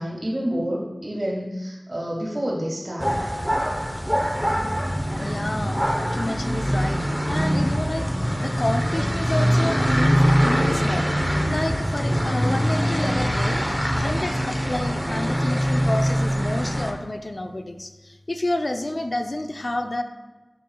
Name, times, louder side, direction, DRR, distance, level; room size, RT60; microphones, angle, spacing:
voice 1, 0.0-3.4, equal, 45° right, -3 dB, 2.0 m, -29 dB
sound 1, 3.0-16.9, equal, ahead, 0.9 m, -23 dB
voice 2, 5.2-8.1 8.4-11.1 11.5-13.6 13.9-20.0, left 1 dB, 45° left, 6 dB, 0.6 m, -29 dB
13.0 x 5.3 x 2.3 m, 1.1 s
wide cardioid pair, 60°, 0 cm